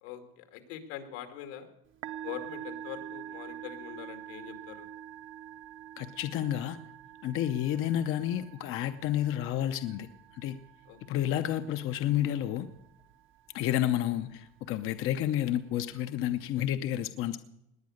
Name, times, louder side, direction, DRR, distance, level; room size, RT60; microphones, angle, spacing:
voice 1, 0.0-1.7 2.2-4.9 10.9-11.2, left 10 dB, 85° left, 7 dB, 2.5 m, -43 dB
Musical instrument, 1.9-16.6, right 10 dB, 40° right, 0.9 m, -47 dB
voice 2, 6.0-6.8 7.2-10.1 10.3-10.6 11.1-12.7 13.5-17.4, left 11 dB, 45° left, 9 dB, 0.7 m, -30 dB
19.5 x 9.6 x 6.4 m, 0.83 s
cardioid pair, 160°, 31 cm